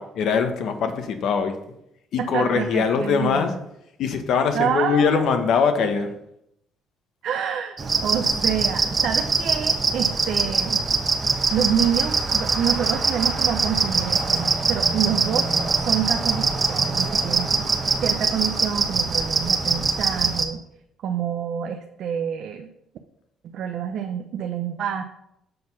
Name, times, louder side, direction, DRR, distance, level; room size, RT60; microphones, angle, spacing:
voice 1, 0.0-1.5 2.1-3.5 4.0-6.1, left 6 dB, 70° left, 7 dB, 1.0 m, -22 dB
voice 2, 2.2-3.6 4.5-5.2 7.2-10.9 11.5-15.5 15.9-17.7 18.0-20.6 21.0-22.7 23.4-25.0, right 8 dB, 70° right, 5 dB, 0.6 m, -27 dB
sound 1, 7.8-20.4, right 4 dB, 35° right, 0.9 m, -23 dB
6.6 x 4.4 x 5.4 m, 0.79 s
cardioid pair, 90°, 0 cm